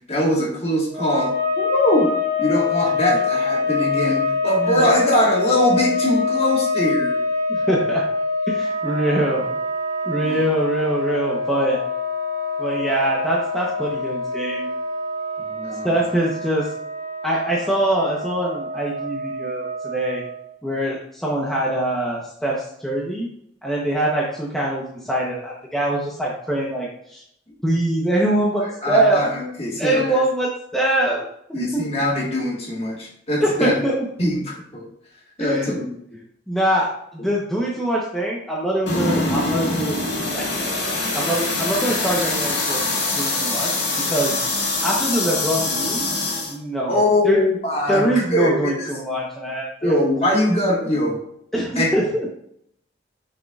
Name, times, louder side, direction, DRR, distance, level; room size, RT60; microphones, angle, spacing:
voice 1, 0.1-1.3 1.6-2.1 2.4-7.2 10.2-10.4 15.5-16.0 28.8-30.2 31.5-33.7 34.2-34.9 35.4-35.9 46.9-48.9 49.8-51.2 51.7-51.9, left 1 dB, 35° left, -2 dB, 1.6 m, -22 dB
sound 1, 0.9-20.6, left 3 dB, 50° right, 2.2 m, -25 dB
voice 2, 7.5-8.0 8.5-9.5 10.1-11.8 12.6-14.7 15.8-16.6 17.2-20.2 20.6-23.3 23.6-27.2 27.6-29.2 29.8-31.8 33.4-33.9 35.4-35.8 36.5-40.0 40.3-40.5 41.1-42.8 43.1-44.4 44.8-46.1 46.5-47.4 47.9-50.0 51.5-52.3, right 1 dB, ahead, -4 dB, 0.9 m, -23 dB
sound 2, 38.9-46.5, left 2 dB, 90° left, 1.7 m, -24 dB
6.5 x 6.5 x 2.4 m, 0.71 s
head